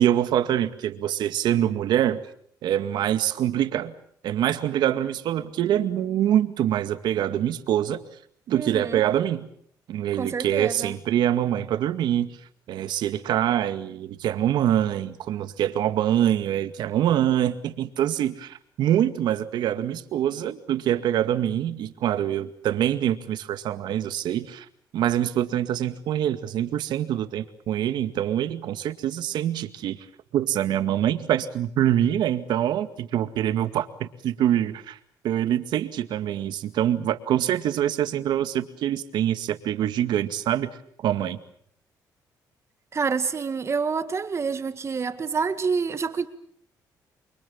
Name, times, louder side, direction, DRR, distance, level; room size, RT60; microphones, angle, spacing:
voice 1, 0.0-2.2 2.6-3.9 4.2-8.0 8.5-9.5 9.9-12.3 12.7-24.7 24.9-30.0 30.3-35.0 35.2-41.4, right 11 dB, 80° right, 2.1 m, -25 dB
voice 2, 8.5-9.0 10.2-10.9 42.9-46.3, right 5 dB, 40° right, 2.0 m, -27 dB
29.5 x 24.0 x 7.2 m
cardioid pair, 90°, 7 cm